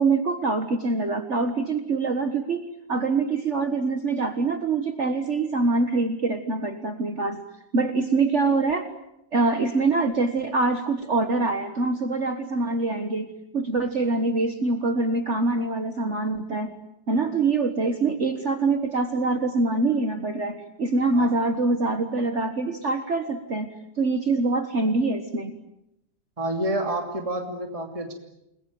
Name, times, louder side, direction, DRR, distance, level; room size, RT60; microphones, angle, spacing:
voice 1, 0.0-2.6 2.9-7.4 7.7-8.9 9.3-16.7 17.1-25.6, right 3 dB, 45° right, 7 dB, 1.7 m, -24 dB
voice 2, 26.4-28.1, right 1 dB, 20° right, 3 dB, 2.9 m, -29 dB
29.5 x 21.0 x 9.2 m, 0.86 s
omnidirectional pair, 1.8 m